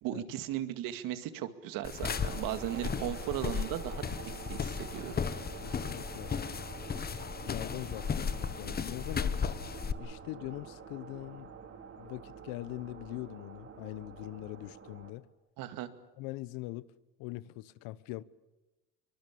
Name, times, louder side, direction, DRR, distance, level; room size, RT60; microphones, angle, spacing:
voice 1, 0.0-4.0 4.5-5.2 15.6-15.9, right 12 dB, 70° right, 2.3 m, -36 dB
sound 1, 1.8-9.9, left 6 dB, 25° left, 1.2 m, -35 dB
sound 2, 2.1-15.1, right 6 dB, 40° right, 3.9 m, -47 dB
voice 2, 5.6-6.3 7.4-9.4 10.0-11.5 12.0-15.3 16.2-16.9 17.2-18.2, left 18 dB, 80° left, 1.0 m, -42 dB
23.5 x 23.5 x 8.6 m
supercardioid pair, 105°, 34 cm